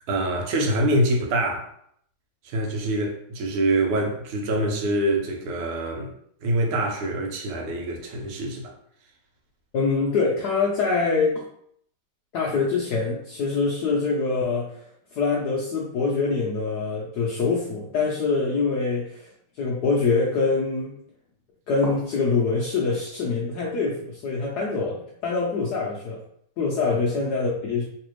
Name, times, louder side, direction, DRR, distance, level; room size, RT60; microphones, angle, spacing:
voice 1, 0.1-1.7 2.4-6.1 6.4-8.7, right 1 dB, 85° right, 1.7 m, -25 dB
voice 2, 9.7-11.4 12.3-14.8 15.1-19.3 19.6-20.9 21.7-26.2 26.6-27.8, left 4 dB, 75° left, 0.9 m, -24 dB
3.3 x 3.2 x 3.0 m
omnidirectional pair, 2.3 m